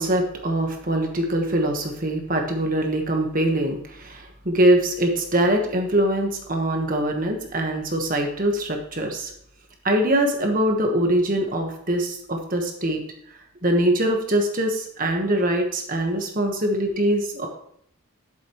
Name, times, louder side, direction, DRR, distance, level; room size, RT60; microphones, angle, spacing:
voice 1, 0.0-9.3 9.8-13.0 13.6-17.5, right 1 dB, 40° right, 3 dB, 1.3 m, -23 dB
11.5 x 7.6 x 3.1 m, 0.67 s
head